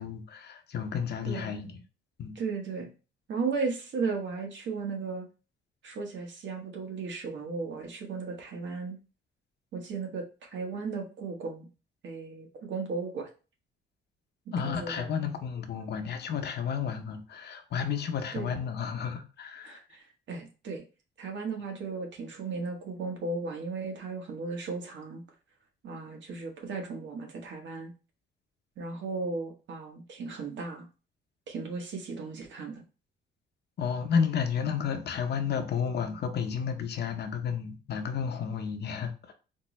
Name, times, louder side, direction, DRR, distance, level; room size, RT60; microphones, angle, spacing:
voice 1, 0.0-1.8 2.2-2.3 14.5-19.8 33.8-39.3, left 7 dB, 55° left, 0.7 m, -32 dB
voice 2, 2.3-2.9 3.3-5.3 5.8-9.0 9.7-11.7 12.0-13.3 14.5-15.2 18.3-18.5 19.6-20.8 21.2-25.2 25.8-27.9 28.8-30.9 31.5-32.8, right 4 dB, 70° right, 1.1 m, -35 dB
4.3 x 2.0 x 3.1 m
cardioid pair, 90°, 20 cm